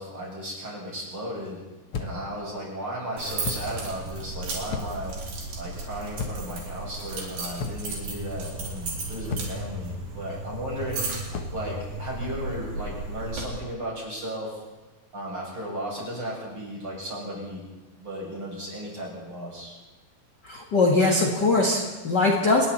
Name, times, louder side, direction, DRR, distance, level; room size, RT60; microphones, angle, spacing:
voice 1, 0.0-1.6 2.0-5.2 5.6-11.1 11.5-14.6 15.1-17.6 18.0-19.8, equal, 30° right, -4 dB, 8.3 m, -35 dB
sound 1, 1.9-2.3 3.4-3.8 4.7-5.1 6.2-6.6 7.6-8.0 9.3-9.7 11.3-11.6, left 5 dB, 75° left, 1.2 m, -33 dB
sound 2, 3.2-13.4, right 2 dB, 75° right, 5.8 m, -35 dB
voice 2, 20.4-22.7, left 2 dB, 45° left, 0 dB, 1.4 m, -21 dB
29.5 x 20.5 x 4.3 m, 1.2 s
omnidirectional pair, 4.8 m